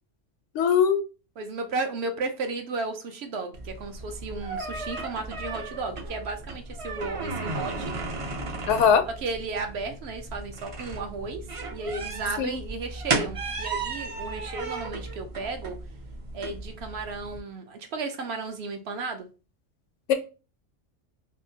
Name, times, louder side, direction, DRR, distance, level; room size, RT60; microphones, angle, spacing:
voice 1, 0.5-1.0 8.7-9.0 12.4-12.6 20.1-20.2, left 7 dB, 75° left, 0.9 m, -20 dB
voice 2, 1.4-8.0 9.2-15.8 16.3-19.3, right 3 dB, 65° right, 0.8 m, -34 dB
sound 1, 3.5-17.4, right 3 dB, 45° right, 0.4 m, -35 dB
3.5 x 2.6 x 2.6 m
omnidirectional pair, 1.3 m